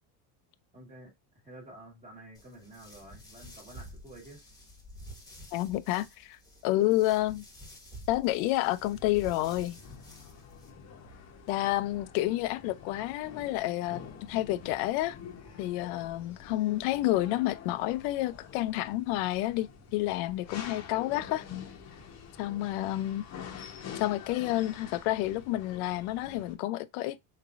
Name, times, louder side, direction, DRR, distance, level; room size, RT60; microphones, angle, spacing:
voice 1, 0.7-4.4 11.5-11.7 22.5-23.0, right 1 dB, 20° right, 1.2 m, -51 dB
sound 1, 2.3-10.7, equal, 10° left, 1.1 m, -50 dB
voice 2, 5.5-6.4 6.6-7.4 8.1-9.8 11.5-15.2 15.6-21.4 22.4-23.2 23.9-27.2, left 16 dB, 75° left, 0.5 m, -29 dB
sound 2, 8.8-26.5, left 7 dB, 35° left, 0.8 m, -47 dB
3.6 x 3.2 x 2.4 m
cardioid pair, 135°, 45 cm